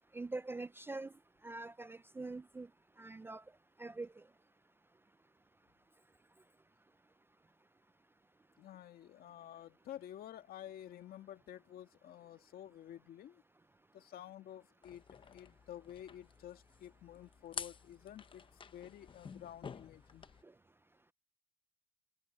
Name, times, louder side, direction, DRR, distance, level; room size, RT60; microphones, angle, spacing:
voice 1, 0.1-1.1 1.4-2.7 3.0-3.4 3.8-4.2, right 3 dB, 15° right, 0.4 m, -44 dB
voice 2, 8.6-13.4 13.9-20.3, left 11 dB, 60° left, 1.9 m, -51 dB
sound 1, 14.8-20.4, left 6 dB, 30° left, 0.9 m, -50 dB
cardioid pair, 110°, 17 cm